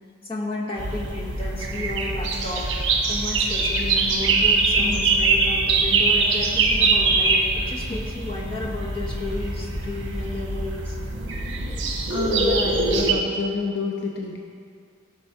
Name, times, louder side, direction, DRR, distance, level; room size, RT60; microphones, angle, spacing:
voice 1, 0.3-11.0 12.5-12.6, left 2 dB, 30° left, -4 dB, 1.9 m, -33 dB
sound 1, 0.8-13.1, right 3 dB, 65° right, 1.4 m, -23 dB
voice 2, 4.8-5.1 12.1-14.4, left 3 dB, 60° left, 0 dB, 0.8 m, -28 dB
17.0 x 5.8 x 5.4 m, 2.2 s
head